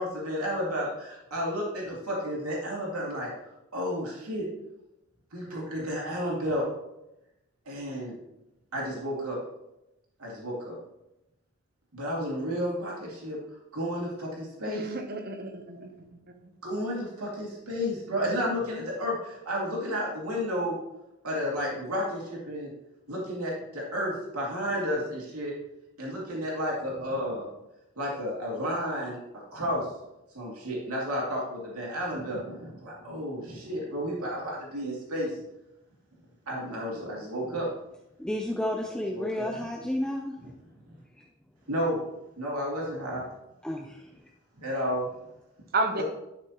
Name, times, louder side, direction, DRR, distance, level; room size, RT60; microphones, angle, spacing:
voice 1, 0.0-3.3 3.7-4.4 5.3-6.6 7.7-8.1 8.7-9.4 10.2-10.8 11.9-13.4 13.7-14.8 16.6-20.8 21.2-22.7 23.1-25.5 26.0-27.5 28.0-29.2 29.5-29.8 30.3-35.4 36.5-37.7 39.1-39.5 40.4-40.5 41.7-42.0 42.4-43.2 44.6-45.1 46.0-46.1, equal, 85° right, -4 dB, 2.6 m, -32 dB
voice 2, 14.7-16.2 45.7-46.0, right 3 dB, 45° right, 6 dB, 0.9 m, -31 dB
voice 3, 38.2-40.3 43.6-43.9, left 1 dB, 5° left, 1 dB, 0.4 m, -31 dB
11.5 x 6.0 x 3.0 m, 0.90 s
head